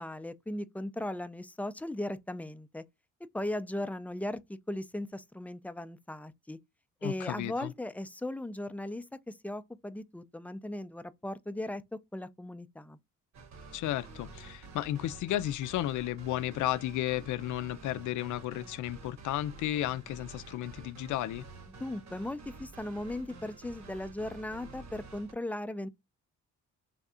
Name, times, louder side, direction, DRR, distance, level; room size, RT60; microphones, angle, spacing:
voice 1, 0.0-2.8 3.3-6.6 7.0-11.8 12.1-13.0 21.7-25.9, left 1 dB, 5° left, 0.4 m, -37 dB
voice 2, 7.0-7.7 13.7-21.4, left 14 dB, 75° left, 0.5 m, -33 dB
sound 1, 13.3-25.3, right 3 dB, 60° right, 1.1 m, -49 dB
3.4 x 2.4 x 4.2 m
cardioid pair, 90°, 30 cm